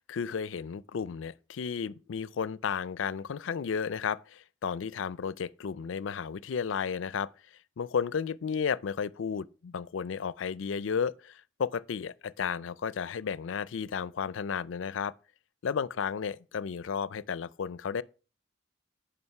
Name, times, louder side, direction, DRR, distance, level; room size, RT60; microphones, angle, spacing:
voice 1, 0.1-7.3 7.8-15.1 15.6-18.0, left 6 dB, 75° left, 0.4 m, -33 dB
9.7 x 5.2 x 5.8 m
head